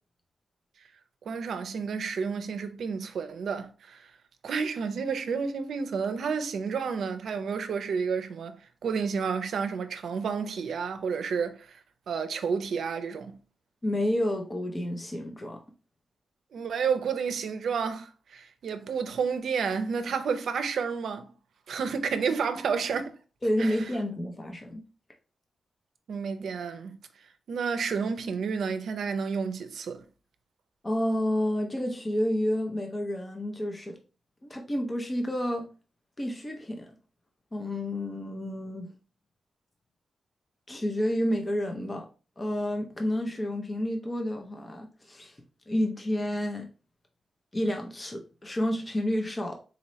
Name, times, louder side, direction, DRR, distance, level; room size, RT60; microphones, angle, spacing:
voice 1, 1.3-4.1 4.4-11.8 12.1-13.4 16.5-21.3 21.7-23.1 23.6-23.8 26.1-27.0 27.5-30.0, right 6 dB, 75° right, 0.5 m, -30 dB
voice 2, 13.8-15.6 23.4-24.8 30.8-34.0 34.4-35.7 36.2-36.9 37.5-38.9 40.7-42.1 42.4-45.3 45.7-46.7 47.5-49.6, left 1 dB, 20° left, 0.5 m, -30 dB
4.0 x 2.8 x 3.0 m
wide cardioid pair, 155°, 0 cm